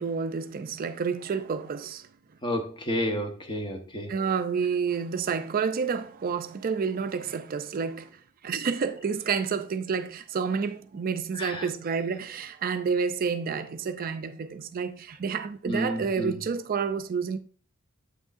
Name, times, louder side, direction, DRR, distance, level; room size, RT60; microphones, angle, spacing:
voice 1, 0.0-2.1 4.1-8.1 8.4-17.4, right 5 dB, 45° right, 0.4 m, -29 dB
voice 2, 2.4-4.1 11.3-11.7 15.7-16.3, equal, 25° left, 0.9 m, -31 dB
8.1 x 6.2 x 2.5 m
head